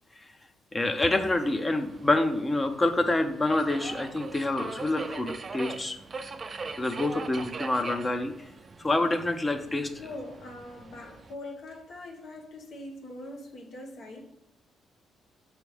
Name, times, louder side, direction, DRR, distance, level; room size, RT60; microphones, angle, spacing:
voice 1, 0.7-6.0 6.8-8.3 8.8-9.9, left 2 dB, 25° left, 0.6 m, -27 dB
Subway metro underground, 0.8-11.3, right 4 dB, 35° right, 0.4 m, -42 dB
voice 2, 10.0-14.3, left 1 dB, 65° left, 1.1 m, -42 dB
6.1 x 3.2 x 4.8 m
cardioid pair, 90°, 0 cm